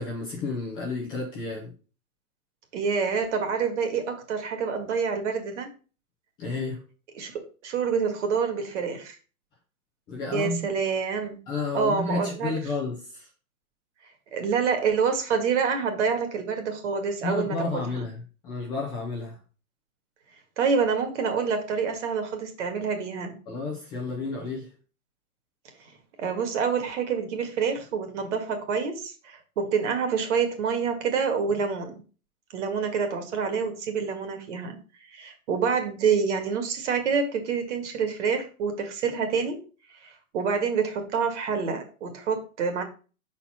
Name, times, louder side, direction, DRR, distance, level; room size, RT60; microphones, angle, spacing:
voice 1, 0.0-1.7 6.4-6.8 10.1-10.7 11.5-13.3 17.2-19.4 23.5-24.7, left 3 dB, 10° left, 0.6 m, -31 dB
voice 2, 2.7-5.7 7.2-9.2 10.3-11.4 11.7-12.5 14.3-17.8 20.6-23.4 26.2-32.0 32.5-34.8 35.1-39.6 40.0-42.8, right 6 dB, 55° right, 1.9 m, -27 dB
5.9 x 4.3 x 5.7 m
hypercardioid pair, 170°, 44 cm